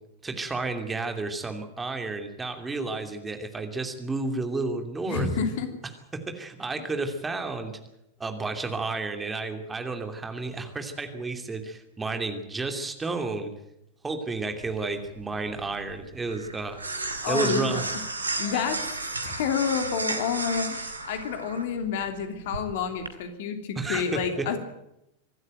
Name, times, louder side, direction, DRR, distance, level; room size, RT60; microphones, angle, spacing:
voice 1, 0.2-5.3 6.3-7.7 8.2-13.5 14.0-16.8 17.3-17.8 18.5-18.6 23.8-24.5, right 3 dB, 15° right, 6 dB, 2.7 m, -31 dB
voice 2, 5.1-5.7 17.2-17.8 18.4-18.8 19.2-24.6, left 6 dB, 55° left, 7 dB, 2.9 m, -29 dB
sound 1, 14.6-23.1, right 3 dB, 80° right, 2.3 m, -34 dB
25.0 x 12.5 x 9.1 m, 0.85 s
figure-of-eight pair, 90°, 0 cm